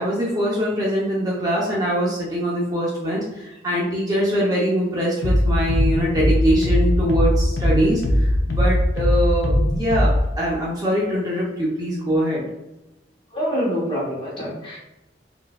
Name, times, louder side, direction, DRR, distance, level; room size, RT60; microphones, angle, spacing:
voice 1, 0.0-12.4, equal, 20° right, -5 dB, 0.6 m, -23 dB
sound 1, 5.2-10.2, left 1 dB, 70° left, 0.6 m, -20 dB
voice 2, 13.3-14.8, equal, 30° left, -6 dB, 1.1 m, -25 dB
3.8 x 2.5 x 2.3 m, 0.98 s
head